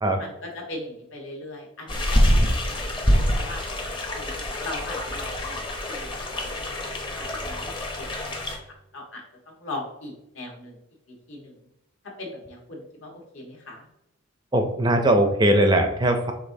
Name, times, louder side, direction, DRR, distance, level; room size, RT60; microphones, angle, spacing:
voice 1, 0.2-3.6 4.1-6.8 7.1-8.6 8.9-10.8 11.3-11.6 12.0-13.9, left 2 dB, 65° left, -1 dB, 1.2 m, -40 dB
sound 1, 1.9-8.6, equal, 20° left, 0.6 m, -25 dB
voice 2, 14.5-16.3, right 1 dB, 20° right, 5 dB, 0.4 m, -20 dB
5.2 x 3.6 x 2.6 m, 0.84 s
head